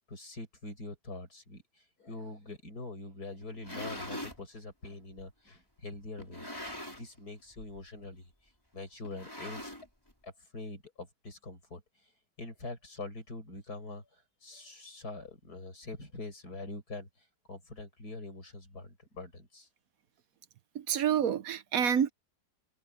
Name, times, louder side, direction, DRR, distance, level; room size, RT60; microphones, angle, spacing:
voice 1, 0.1-1.6 2.0-6.5 6.9-8.3 8.7-9.7 10.2-11.8 12.4-14.0 14.4-17.1 17.5-19.7, left 2 dB, 75° left, 6.7 m, -44 dB
sound 1, 3.4-4.4 5.2-5.3 6.2-7.2 7.5-7.8 8.1-8.2 9.0-10.1, left 1 dB, 15° left, 5.9 m, -42 dB
voice 2, 20.7-22.1, right 8 dB, 65° right, 1.2 m, -28 dB
omnidirectional pair, 1.7 m